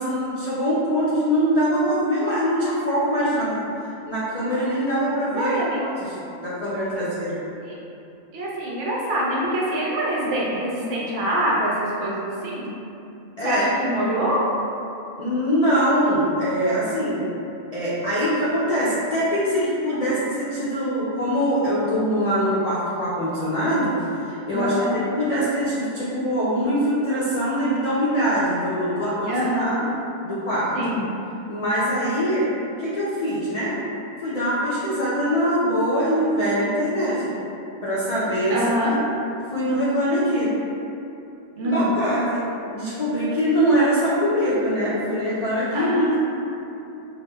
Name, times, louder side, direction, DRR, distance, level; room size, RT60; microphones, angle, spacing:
voice 1, 0.0-3.6 4.1-5.5 6.0-6.1 6.4-7.4 13.4-13.6 15.2-17.2 17.7-29.3 29.6-29.7 30.2-30.7 31.5-32.5 32.8-33.8 34.2-37.3 37.8-39.0 39.5-40.5 41.6-42.5 42.7-46.2, equal, 75° left, -10 dB, 0.3 m, -23 dB
voice 2, 5.3-5.8 6.9-7.0 7.6-7.8 8.3-12.7 13.4-14.5 19.9-20.1 24.5-25.0 29.3-29.9 30.7-31.1 38.5-38.9 41.6-41.9 45.7-46.2, right 1 dB, 65° right, -5 dB, 0.9 m, -25 dB
4.5 x 2.1 x 2.2 m, 2.8 s
omnidirectional pair, 1.4 m